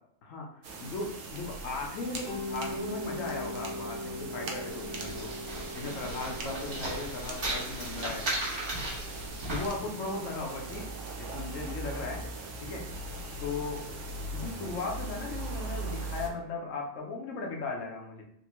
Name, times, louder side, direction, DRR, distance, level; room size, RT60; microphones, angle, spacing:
sound 1, 0.6-16.3, right 2 dB, 75° right, 1.0 m, -40 dB
voice 1, 0.8-5.3 5.7-8.3 9.5-10.9 11.2-12.2 12.6-12.8 13.4-13.8 14.3-18.2, left 3 dB, 90° left, 1 dB, 1.1 m, -37 dB
Mallet percussion, 2.3-11.0, left 2 dB, 55° left, 0.8 m, -42 dB
sound 2, 4.7-9.7, right 1 dB, 45° right, 1.1 m, -36 dB
3.8 x 2.6 x 3.0 m, 0.73 s
omnidirectional pair, 1.3 m